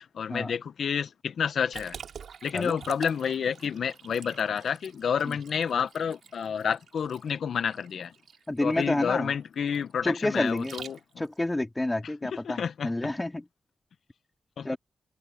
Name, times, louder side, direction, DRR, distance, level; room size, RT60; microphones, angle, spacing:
voice 1, 0.0-2.0 2.4-8.1 8.6-11.0 12.0-13.1 14.6-14.8, left 7 dB, 80° left, 1.0 m, -30 dB
Liquid, 1.7-11.4, right 7 dB, 85° right, 4.4 m, -46 dB
voice 2, 8.5-9.3 10.0-10.7 11.2-13.4 14.6-14.8, left 1 dB, 20° left, 2.7 m, -29 dB
cardioid pair, 60°, 0 cm